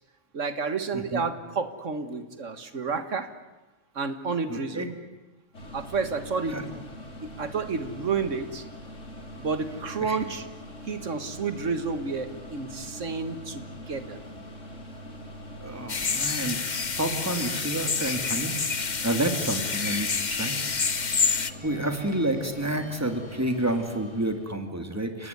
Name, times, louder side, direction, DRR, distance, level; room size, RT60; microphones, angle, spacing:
voice 1, 0.3-3.3 4.0-4.9 5.7-6.8 7.2-8.6 9.4-10.5 10.8-14.2, right 4 dB, 80° right, 10 dB, 1.9 m, -30 dB
voice 2, 0.9-1.2 4.5-4.9 6.5-6.6 10.0-10.2 15.6-20.6 21.6-25.3, right 1 dB, 10° right, 6 dB, 2.7 m, -30 dB
sound 1, 5.5-24.5, equal, 80° left, 3.9 m, -43 dB
sound 2, 15.9-21.5, left 5 dB, 40° left, 1.2 m, -28 dB
30.0 x 19.5 x 9.5 m, 1.1 s
omnidirectional pair, 1.3 m